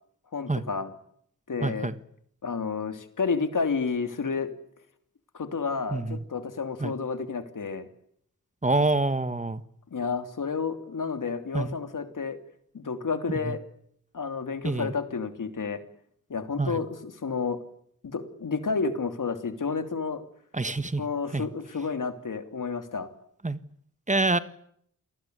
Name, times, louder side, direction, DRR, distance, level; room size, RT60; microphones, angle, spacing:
voice 1, 0.3-0.9 1.5-1.9 2.4-4.5 5.3-7.9 9.9-12.4 12.7-13.6 14.1-15.8 16.3-17.6 18.0-20.2 21.0-23.1, left 5 dB, 80° left, 8 dB, 3.0 m, -30 dB
voice 2, 1.6-2.0 5.9-6.2 6.8-6.9 8.6-9.6 11.5-11.7 13.3-13.5 14.6-14.9 16.6-16.8 20.5-21.1 21.3-21.5 23.4-23.6 24.1-24.4, right 2 dB, 25° right, 13 dB, 1.5 m, -26 dB
28.5 x 20.0 x 9.4 m, 0.68 s
wide cardioid pair, 80°, 31 cm